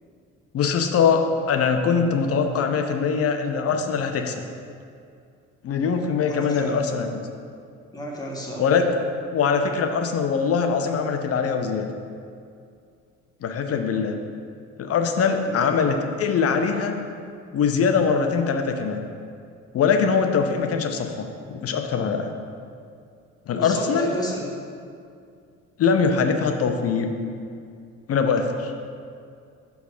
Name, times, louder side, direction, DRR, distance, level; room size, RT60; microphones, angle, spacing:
voice 1, 0.5-4.4 5.6-7.1 8.6-8.9 9.3-11.9 13.4-14.2 14.8-16.9 17.5-19.0 19.7-22.4 23.5-24.1 25.8-27.1 28.1-28.7, left 5 dB, 35° left, 5 dB, 0.8 m, -22 dB
voice 2, 6.3-6.8 7.9-8.7 15.4-15.7 23.5-24.5, equal, 10° left, -3 dB, 1.6 m, -32 dB
6.7 x 4.7 x 6.2 m, 2.3 s
figure-of-eight pair, 50°, 41 cm